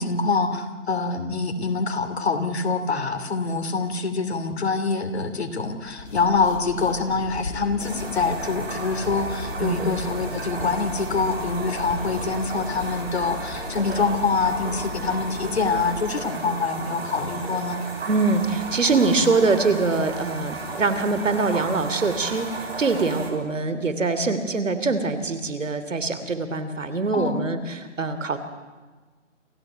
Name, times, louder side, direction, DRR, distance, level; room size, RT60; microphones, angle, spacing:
voice 1, 0.0-17.8 27.1-27.4, left 4 dB, 55° left, 7 dB, 2.9 m, -25 dB
sound 1, 5.8-16.4, left 2 dB, 85° left, 4.9 m, -37 dB
flushing the toilet and refill water, 7.8-23.3, right 3 dB, 50° right, 4.6 m, -34 dB
voice 2, 18.1-28.4, right 3 dB, 75° right, 11 dB, 3.0 m, -23 dB
28.0 x 14.5 x 9.4 m, 1.4 s
hypercardioid pair, 170°, 38 cm